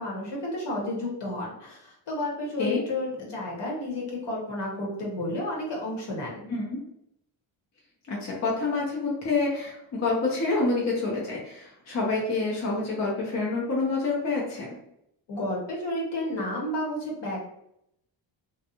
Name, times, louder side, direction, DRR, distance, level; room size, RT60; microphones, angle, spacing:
voice 1, 0.0-6.4 15.3-17.5, left 1 dB, 60° left, -3 dB, 1.1 m, -31 dB
voice 2, 8.1-14.7, left 3 dB, 35° left, -4 dB, 0.7 m, -27 dB
2.5 x 2.4 x 2.7 m, 0.76 s
cardioid pair, 105°, 48 cm